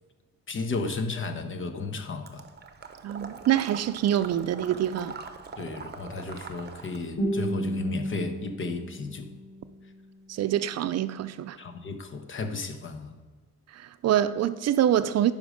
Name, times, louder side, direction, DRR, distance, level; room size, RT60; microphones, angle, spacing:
voice 1, 0.5-2.4 5.6-9.3 11.6-13.1, left 3 dB, 40° left, 1.0 m, -34 dB
Water / Liquid, 2.3-7.1, right 5 dB, 35° right, 0.9 m, -42 dB
voice 2, 3.0-5.1 10.3-11.6 13.7-15.3, right 11 dB, 55° right, 0.5 m, -25 dB
Guitar, 7.2-10.2, right 1 dB, 70° left, 2.7 m, -32 dB
10.5 x 5.3 x 5.0 m
cardioid pair, 90°, 30 cm